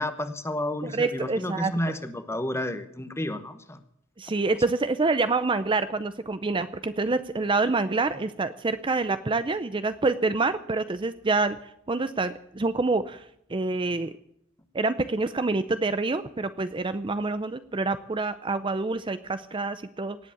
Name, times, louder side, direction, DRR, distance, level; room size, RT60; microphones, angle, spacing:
voice 1, 0.0-3.8, left 1 dB, 15° left, 10 dB, 1.1 m, -31 dB
voice 2, 0.8-1.7 4.2-14.1 14.7-20.2, right 3 dB, 25° right, 12 dB, 0.5 m, -27 dB
18.5 x 8.1 x 8.6 m, 0.74 s
head